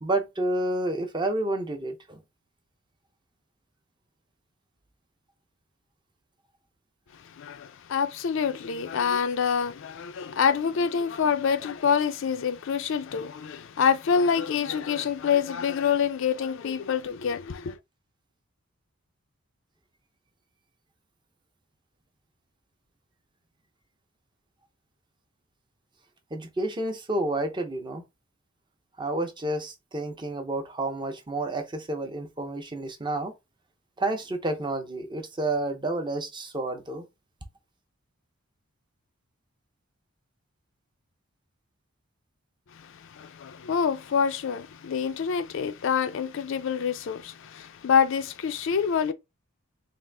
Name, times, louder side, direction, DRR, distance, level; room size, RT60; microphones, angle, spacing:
voice 1, 0.0-2.2 26.3-28.0 29.0-33.3 34.0-37.0, right 2 dB, 20° right, 0.6 m, -30 dB
voice 2, 7.3-17.8 42.7-49.1, left 6 dB, 60° left, 0.4 m, -26 dB
3.6 x 2.4 x 3.3 m
head